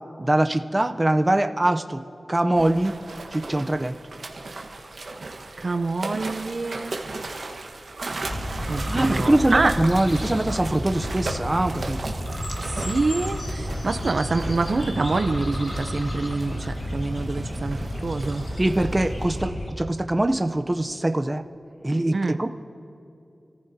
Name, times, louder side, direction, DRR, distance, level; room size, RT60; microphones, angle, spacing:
voice 1, 0.2-2.0 2.3-3.0 3.3-3.9 8.9-12.0 18.6-21.4 21.8-22.5, right 1 dB, 25° right, 6 dB, 0.7 m, -23 dB
sound 1, 2.6-19.4, right 3 dB, 80° right, 1.4 m, -37 dB
voice 2, 5.6-6.9 8.7-9.8 12.6-18.4 22.1-22.4, right 3 dB, 65° right, 9 dB, 0.7 m, -26 dB
sound 2, 8.2-19.7, equal, 70° left, 2.6 m, -31 dB
27.5 x 14.5 x 2.8 m, 2.8 s
wide cardioid pair, 65°, 0 cm